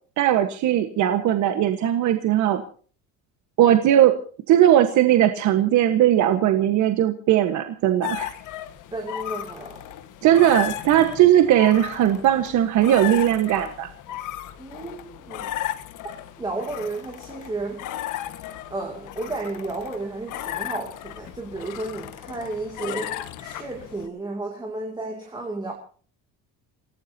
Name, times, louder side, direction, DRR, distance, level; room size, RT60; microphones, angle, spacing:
voice 1, 0.2-2.6 3.6-4.2 4.5-8.3 10.2-13.9, right 11 dB, 50° right, 7 dB, 1.4 m, -18 dB
sound 1, 8.0-24.1, left 12 dB, 55° left, 1.6 m, -35 dB
voice 2, 8.9-9.8 14.6-15.5 16.4-17.8 18.7-25.7, right 2 dB, 10° right, 0 dB, 2.6 m, -32 dB
28.5 x 17.5 x 2.8 m, 0.42 s
cardioid pair, 165°, 36 cm